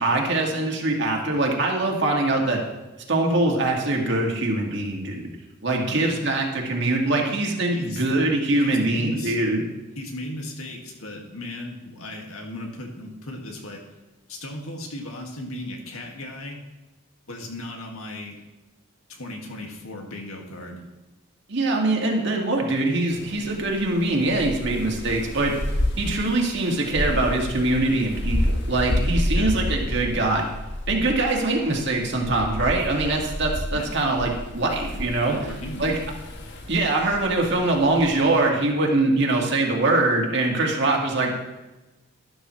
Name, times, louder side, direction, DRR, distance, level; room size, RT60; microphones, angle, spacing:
voice 1, 0.0-2.6 3.1-5.3 5.6-9.6 21.5-25.5 26.0-30.4 30.9-35.4 35.8-36.0 36.7-41.3, right 2 dB, 55° right, 0 dB, 2.0 m, -23 dB
voice 2, 5.8-6.2 7.7-8.0 8.6-9.4 10.0-13.8 14.3-16.6 17.3-18.4 19.1-20.8 29.3-29.5 33.7-34.0 34.9-36.0, left 1 dB, 85° left, 1 dB, 2.0 m, -36 dB
sound 1, 23.1-38.5, left 1 dB, 55° left, 1.3 m, -30 dB
12.0 x 12.0 x 3.2 m, 1.1 s
head